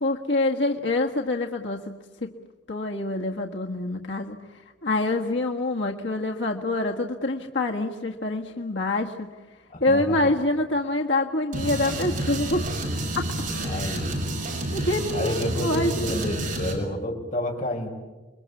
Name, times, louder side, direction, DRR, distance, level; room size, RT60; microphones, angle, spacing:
voice 1, 0.0-1.8 2.2-2.3 2.7-4.4 4.8-9.3 9.8-12.6 13.1-13.3 13.8-13.9 14.7-16.2, left 2 dB, 90° left, 1 dB, 1.6 m, -26 dB
voice 2, 9.7-10.3 13.6-14.1 15.1-17.9, left 1 dB, 45° left, 1 dB, 5.6 m, -30 dB
sound 1, 11.5-16.8, right 1 dB, 50° right, 6.5 m, -29 dB
28.5 x 23.0 x 8.4 m, 1.2 s
head